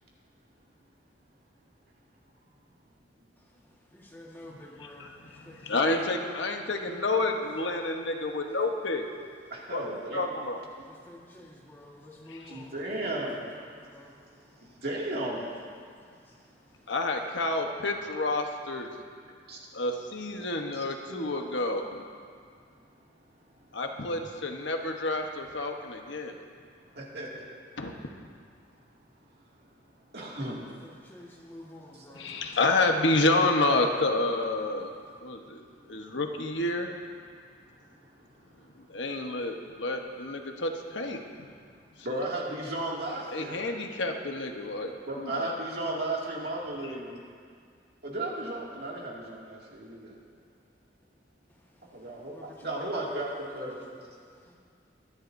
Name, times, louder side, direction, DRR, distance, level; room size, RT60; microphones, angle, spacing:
voice 1, 3.9-5.9 10.7-14.8 15.8-16.9 30.3-32.5 34.8-35.2 51.5-53.7 54.1-54.6, left 1 dB, 10° left, -2 dB, 1.5 m, -51 dB
voice 2, 5.4-9.0 9.7-9.8 10.1-10.6 16.9-18.9 19.7-22.0 23.7-26.3 27.8-28.0 32.1-34.9 35.2-35.6 35.9-36.9 38.9-41.5 42.1-42.3 43.3-45.5, left 2 dB, 80° left, 3 dB, 1.1 m, -29 dB
voice 3, 9.5-10.3 12.5-13.5 14.5-15.5 19.5-19.6 20.6-21.3 26.9-27.4 30.1-30.7 36.1-36.2 37.3-37.5 42.0-43.6 45.1-47.1 48.0-50.2 51.9-54.1, right 1 dB, 60° right, -4 dB, 2.3 m, -35 dB
22.5 x 11.0 x 2.7 m, 2.1 s
head